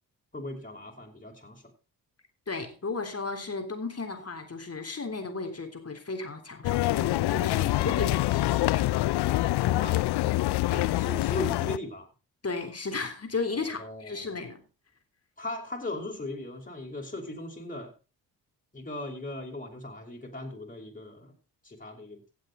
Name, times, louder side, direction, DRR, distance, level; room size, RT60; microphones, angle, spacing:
voice 1, 0.3-1.6 9.4-10.0 10.7-12.1 13.6-14.3 15.4-17.9 18.7-21.3 21.6-22.2, left 1 dB, 20° left, 5.0 m, -38 dB
voice 2, 2.5-9.0 10.6-10.9 12.4-14.6, left 4 dB, 35° left, 3.5 m, -34 dB
sound 1, 6.6-11.8, left 17 dB, 60° left, 0.6 m, -26 dB
16.5 x 7.7 x 4.0 m
supercardioid pair, 50°, 44 cm